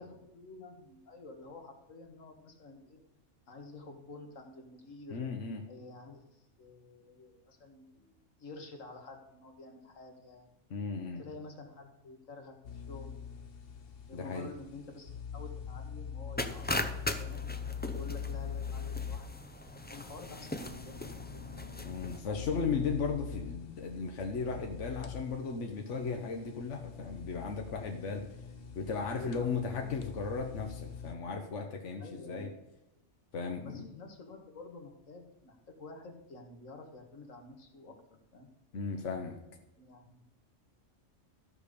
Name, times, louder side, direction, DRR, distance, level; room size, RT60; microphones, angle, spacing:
voice 1, 0.0-3.0 3.5-5.2 5.7-10.5 11.2-13.1 14.1-16.9 17.2-17.5 17.9-19.3 19.9-21.6 29.1-29.9 32.0-32.6 33.6-38.5 39.8-40.2, left 3 dB, 90° left, 4 dB, 1.9 m, -50 dB
voice 2, 5.1-5.6 10.7-11.2 14.1-14.5 21.8-28.2 28.7-32.5 33.3-33.9 38.7-39.4, left 5 dB, 70° left, 3 dB, 1.3 m, -36 dB
sound 1, 12.6-31.1, left 7 dB, 50° left, 1.0 m, -43 dB
sound 2, 16.4-22.2, left 1 dB, 15° left, 0.3 m, -39 dB
13.5 x 5.1 x 6.8 m, 0.93 s
omnidirectional pair, 1.3 m